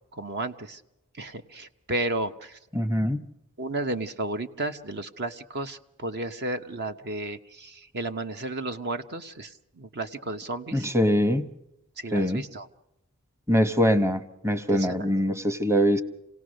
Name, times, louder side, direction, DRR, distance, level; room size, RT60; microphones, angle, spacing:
voice 1, 0.1-0.8 1.2-2.6 3.6-10.9 12.0-12.7 14.7-15.1, right 2 dB, 50° right, 9 dB, 1.0 m, -33 dB
voice 2, 2.7-3.2 10.7-11.5 12.1-12.4 13.5-16.0, equal, 15° right, 10 dB, 1.1 m, -23 dB
28.0 x 18.0 x 6.4 m, 0.87 s
head